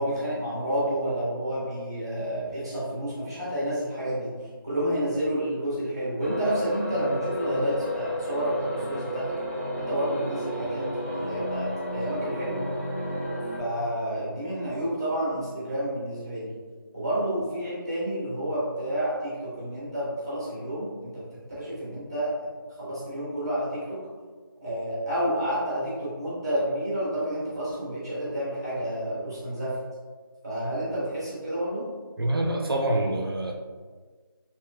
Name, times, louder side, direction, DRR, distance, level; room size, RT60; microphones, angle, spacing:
voice 1, 0.0-4.3 4.6-9.3 9.8-10.8 11.1-11.7 11.9-12.6 13.6-16.5 16.9-21.1 21.6-22.3 22.8-24.0 24.6-29.7 30.4-31.8, right 1 dB, 10° right, -9 dB, 0.8 m, -29 dB
sound 1, 6.2-13.6, equal, 35° left, 0.4 m, -32 dB
voice 2, 32.2-33.5, right 1 dB, 85° right, 2 dB, 0.5 m, -26 dB
3.2 x 2.8 x 2.3 m, 1.5 s
figure-of-eight pair, 175°, 12 cm